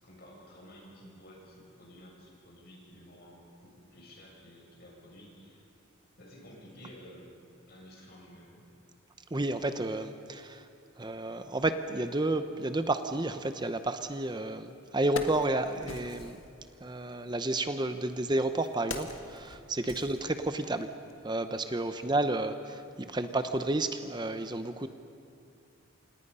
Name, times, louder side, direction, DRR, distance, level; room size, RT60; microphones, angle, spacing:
voice 1, 0.0-5.6 6.2-8.7 19.9-20.1 21.9-22.1, equal, 50° left, -2 dB, 7.2 m, -52 dB
voice 2, 9.3-10.7 11.0-16.4 16.8-20.9 21.2-24.9, right 2 dB, 20° right, 9 dB, 0.8 m, -31 dB
Wood, 14.3-14.4 14.8-16.5 17.5-20.8 21.1-21.2, left 3 dB, 70° left, 1.8 m, -42 dB
28.5 x 27.0 x 5.6 m, 2.5 s
head